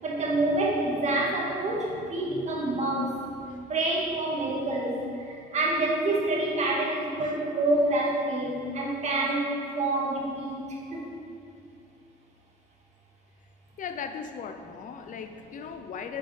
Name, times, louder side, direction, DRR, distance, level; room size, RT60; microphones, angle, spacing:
voice 1, 0.0-3.2 3.7-11.1, right 2 dB, 40° right, -3 dB, 2.3 m, -27 dB
voice 2, 13.8-16.2, left 6 dB, 50° left, 7 dB, 0.6 m, -38 dB
9.8 x 6.5 x 5.2 m, 2.5 s
cardioid pair, 110°, 17 cm